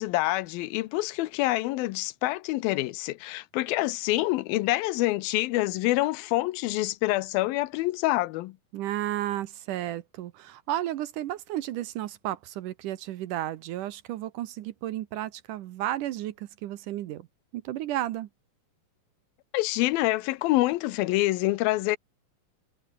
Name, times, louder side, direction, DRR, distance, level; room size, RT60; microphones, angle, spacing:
voice 1, 0.0-8.6 19.5-22.0, left 18 dB, 85° left, 2.5 m, -26 dB
voice 2, 8.7-17.3 17.5-18.3, right 13 dB, 70° right, 2.2 m, -33 dB
omnidirectional pair, 4.2 m